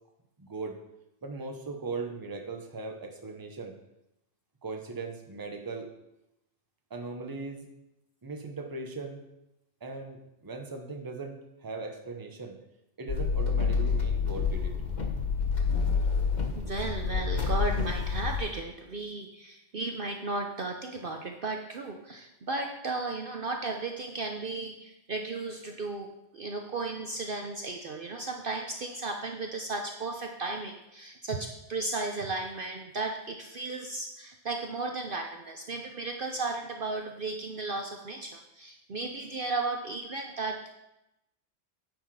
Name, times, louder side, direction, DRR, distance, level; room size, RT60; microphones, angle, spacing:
voice 1, 0.4-0.8 1.2-3.7 4.6-5.9 6.9-7.7 8.2-9.2 9.8-12.6 13.0-14.8, right 3 dB, 20° right, 3 dB, 0.9 m, -39 dB
sound 1, 13.1-18.4, left 5 dB, 40° left, 1.2 m, -28 dB
voice 2, 16.6-26.1 26.3-40.6, right 3 dB, 50° right, 3 dB, 0.9 m, -35 dB
9.8 x 6.7 x 4.8 m, 0.89 s
omnidirectional pair, 1.3 m